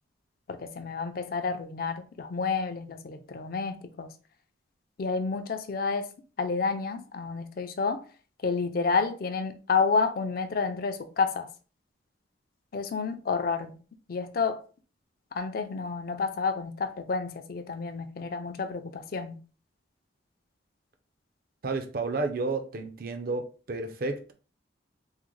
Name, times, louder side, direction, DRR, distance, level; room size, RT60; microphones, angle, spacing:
voice 1, 0.5-4.1 5.0-6.1 6.4-8.0 8.4-11.5 12.7-13.7 14.1-14.6 15.3-19.4, left 4 dB, 50° left, 0.4 m, -30 dB
voice 2, 21.6-24.3, right 3 dB, 50° right, 0.4 m, -31 dB
3.6 x 2.1 x 3.0 m
head